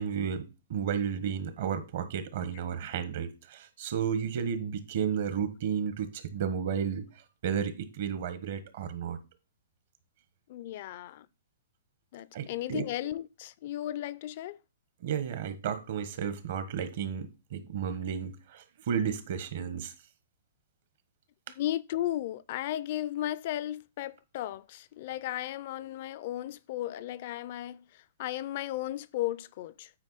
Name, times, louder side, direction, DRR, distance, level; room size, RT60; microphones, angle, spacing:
voice 1, 0.0-7.0 7.4-9.2 12.3-12.8 15.0-19.9, right 7 dB, 60° right, 1.2 m, -33 dB
voice 2, 10.5-11.3 12.1-14.6 21.5-29.9, left 13 dB, 50° left, 0.4 m, -35 dB
8.8 x 4.5 x 4.1 m
hypercardioid pair, 145°, 0 cm